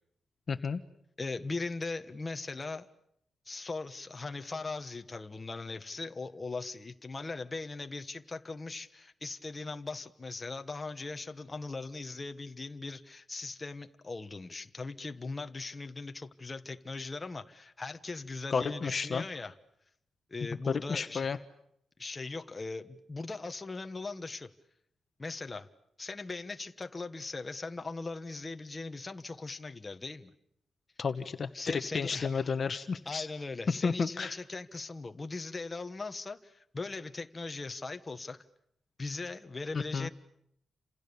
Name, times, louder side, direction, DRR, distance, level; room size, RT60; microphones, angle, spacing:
voice 1, 0.5-0.8 18.5-19.2 20.7-21.4 31.0-33.3 33.7-34.4 39.7-40.1, left 5 dB, 40° left, 9 dB, 1.2 m, -32 dB
voice 2, 1.2-2.9 3.5-19.5 20.3-21.3 22.0-24.5 25.2-25.7 26.0-30.3 31.5-32.5 33.0-38.4 39.0-40.1, left 3 dB, 20° left, 7 dB, 1.3 m, -39 dB
30.0 x 27.5 x 7.0 m, 0.75 s
wide cardioid pair, 135°, 0 cm